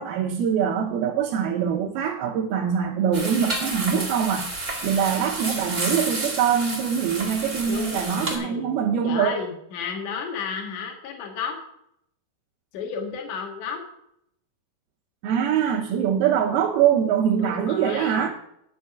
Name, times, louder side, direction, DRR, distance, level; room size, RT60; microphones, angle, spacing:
voice 1, 0.0-4.5 4.8-9.4 15.2-18.3, right 8 dB, 75° right, -2 dB, 2.7 m, -23 dB
sound 1, 3.1-8.4, right 2 dB, 35° right, 0.6 m, -30 dB
voice 2, 7.7-8.7 9.0-11.6 12.7-13.8 15.8-15.9 17.4-18.3, left 6 dB, 55° left, 1 dB, 2.9 m, -32 dB
11.0 x 6.5 x 5.9 m, 0.74 s
omnidirectional pair, 4.9 m